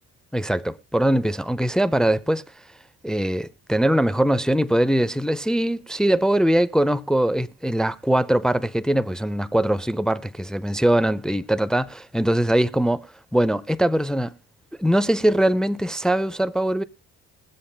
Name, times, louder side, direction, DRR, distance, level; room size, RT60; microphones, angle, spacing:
voice 1, 0.3-2.4 3.0-13.1 13.3-14.3 14.8-16.8, right 1 dB, ahead, 0.4 m, -21 dB
21.5 x 7.6 x 2.2 m
cardioid pair, 90°, 30 cm